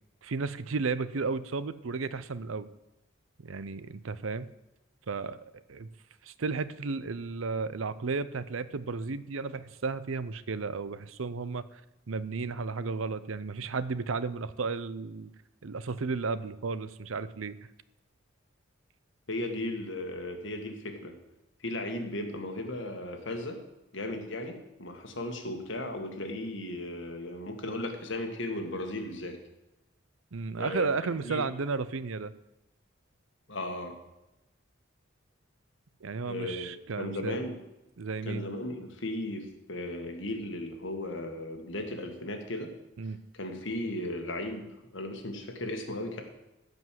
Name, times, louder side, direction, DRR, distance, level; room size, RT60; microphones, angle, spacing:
voice 1, 0.2-2.7 3.4-4.5 5.1-5.9 6.2-11.8 12.1-15.3 15.6-17.6 30.3-32.3 36.0-37.5 38.0-38.4 43.0-43.2, right 4 dB, 80° right, 15 dB, 0.6 m, -33 dB
voice 2, 19.3-21.2 21.6-23.6 23.9-29.4 30.6-31.5 33.5-34.0 36.3-37.6 38.2-42.7 43.3-46.2, left 1 dB, 65° left, 4 dB, 1.9 m, -36 dB
15.0 x 5.4 x 7.6 m, 0.95 s
head